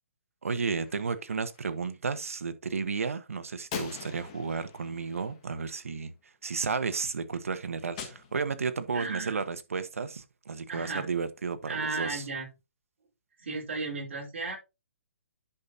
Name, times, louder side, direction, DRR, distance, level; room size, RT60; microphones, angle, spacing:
voice 1, 0.4-6.1 6.4-12.2, right 5 dB, 85° right, 1.3 m, -33 dB
Gunshot gunfire, 0.7-1.8 3.7-6.1 8.0-9.0, left 6 dB, 25° left, 1.5 m, -43 dB
voice 2, 8.9-9.4 10.7-11.1 11.7-12.5 13.4-14.6, right 3 dB, 55° right, 4.6 m, -34 dB
10.5 x 5.9 x 2.9 m
hypercardioid pair, 175°, 7 cm